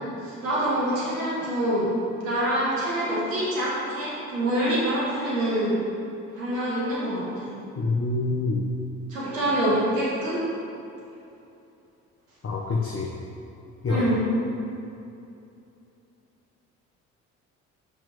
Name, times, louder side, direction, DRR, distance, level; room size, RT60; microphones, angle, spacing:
voice 1, 0.2-1.9 2.2-5.8 6.3-7.5 9.1-10.4 13.9-14.2, right 1 dB, 90° right, -7 dB, 2.0 m, -26 dB
voice 2, 7.8-8.6 12.4-13.1 13.8-14.0, left 3 dB, 35° left, -4 dB, 1.4 m, -26 dB
7.0 x 6.1 x 6.9 m, 2.8 s
hypercardioid pair, 50°, 39 cm